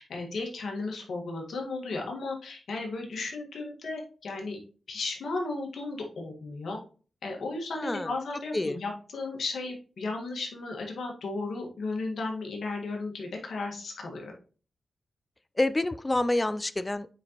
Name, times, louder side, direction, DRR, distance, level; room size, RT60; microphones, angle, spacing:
voice 1, 0.0-4.6 4.9-6.8 7.2-14.3, left 3 dB, 75° left, 1 dB, 1.7 m, -35 dB
voice 2, 7.7-8.1 8.5-8.8 15.6-17.1, left 2 dB, 25° left, 14 dB, 0.4 m, -27 dB
8.8 x 4.0 x 3.0 m, 0.38 s
cardioid pair, 50°, 0 cm